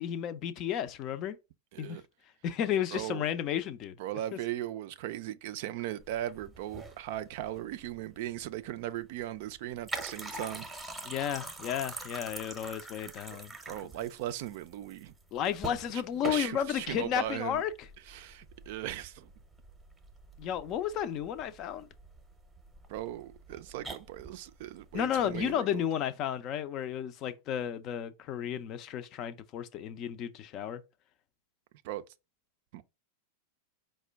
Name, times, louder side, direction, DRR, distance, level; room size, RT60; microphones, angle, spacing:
voice 1, 0.0-1.4 1.8-2.0 2.4-3.9 11.0-13.5 15.3-17.7 20.4-21.9 24.9-30.8, left 9 dB, 35° left, 0.4 m, -33 dB
voice 2, 1.7-2.0 2.9-3.3 4.0-10.7 13.3-15.1 16.2-17.6 18.1-19.3 22.9-25.8 31.8-32.0 32.7-32.8, right 13 dB, 50° right, 0.3 m, -38 dB
sound 1, 6.0-25.6, right 2 dB, 10° right, 0.7 m, -45 dB
4.8 x 2.1 x 3.4 m
figure-of-eight pair, 90°, 0 cm